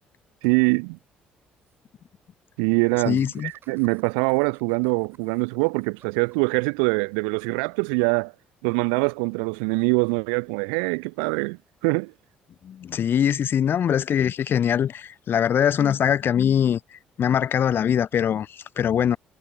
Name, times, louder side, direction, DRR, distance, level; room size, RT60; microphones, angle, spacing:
voice 1, 0.4-1.0 2.6-8.3 8.6-12.1, right 40 dB or more, 80° right, 0.4 m, -24 dB
Laughter, 0.9-1.0 1.3-1.4 1.6-1.8 3.0-6.6, right 8 dB, 55° right, 4.3 m, -58 dB
voice 2, 3.1-3.5 12.6-16.8 17.2-19.2, left 9 dB, 55° left, 0.7 m, -22 dB
hypercardioid pair, 55°, 4 cm